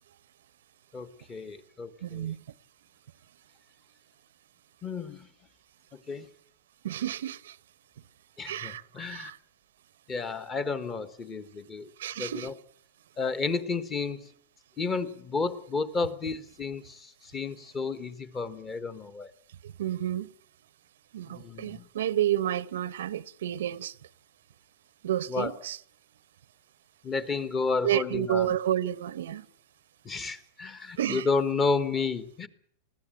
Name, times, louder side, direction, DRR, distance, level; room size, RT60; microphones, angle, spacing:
voice 1, 0.9-2.3 4.8-5.3 6.1-6.3 8.4-9.3 10.1-11.9 12.2-12.5 13.2-14.3 14.8-19.3 21.3-21.9 25.3-25.5 27.0-28.5 30.0-32.5, left 4 dB, 20° left, 1.4 m, -31 dB
voice 2, 2.0-2.4 6.8-7.5 8.4-9.4 12.0-12.5 19.6-20.3 21.1-23.9 25.0-25.8 27.8-29.4 31.0-31.3, right 11 dB, 85° right, 0.9 m, -30 dB
20.5 x 15.0 x 9.1 m
supercardioid pair, 155°, 0 cm